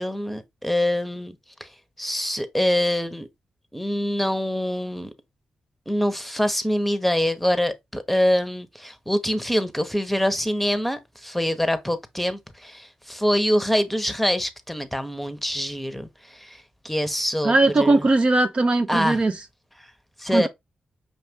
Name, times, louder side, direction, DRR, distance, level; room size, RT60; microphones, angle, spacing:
voice 1, 0.0-1.7 2.0-3.3 3.7-5.1 5.9-18.1 18.9-19.2 20.2-20.5, equal, 5° left, 0.9 m, -25 dB
voice 2, 17.4-19.4 20.3-20.5, right 2 dB, 40° right, 0.5 m, -19 dB
5.4 x 2.5 x 3.5 m
supercardioid pair, 45°, 3 cm